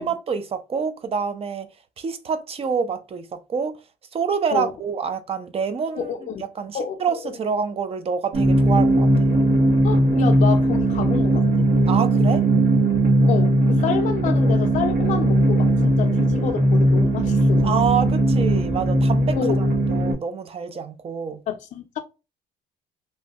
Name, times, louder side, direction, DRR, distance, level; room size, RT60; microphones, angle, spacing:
voice 1, 0.0-1.7 2.0-3.7 4.1-6.1 6.6-9.1 11.9-12.4 17.6-21.4, right 6 dB, 35° right, 0.5 m, -27 dB
voice 2, 5.9-6.4 6.7-7.4 9.8-11.7 13.3-17.8 19.4-19.6 21.5-22.0, left 8 dB, 50° left, 0.5 m, -28 dB
sound 1, 8.3-20.1, right 1 dB, 75° right, 1.3 m, -18 dB
3.1 x 2.2 x 2.7 m
cardioid pair, 110°, 17 cm